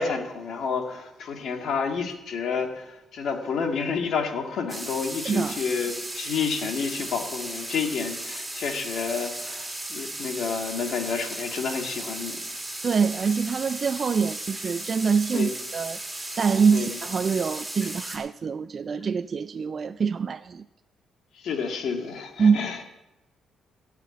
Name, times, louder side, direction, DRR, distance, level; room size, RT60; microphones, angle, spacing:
voice 1, 0.0-12.4 15.3-15.5 16.7-17.0 17.8-18.0 21.4-22.8, left 5 dB, 70° left, 1.9 m, -30 dB
sound 1, 4.7-18.2, right 1 dB, 10° right, 3.4 m, -36 dB
voice 2, 5.2-5.6 12.8-16.0 16.4-20.6 22.4-22.6, right 5 dB, 45° right, 0.4 m, -25 dB
16.5 x 5.8 x 8.4 m
cardioid pair, 90°, 0 cm